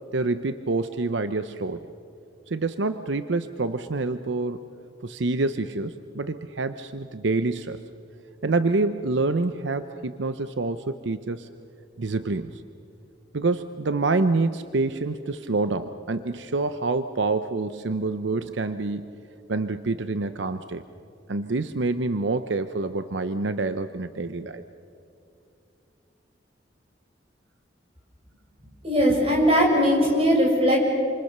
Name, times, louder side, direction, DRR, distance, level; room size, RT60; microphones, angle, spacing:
voice 1, 0.1-1.8 2.5-4.6 5.0-7.8 8.4-11.5 12.0-12.6 13.3-19.1 19.5-20.8 21.3-24.6, right 3 dB, 75° right, 11 dB, 0.7 m, -27 dB
voice 2, 28.8-30.8, equal, 30° right, -1 dB, 6.4 m, -19 dB
28.0 x 26.0 x 6.7 m, 2.6 s
head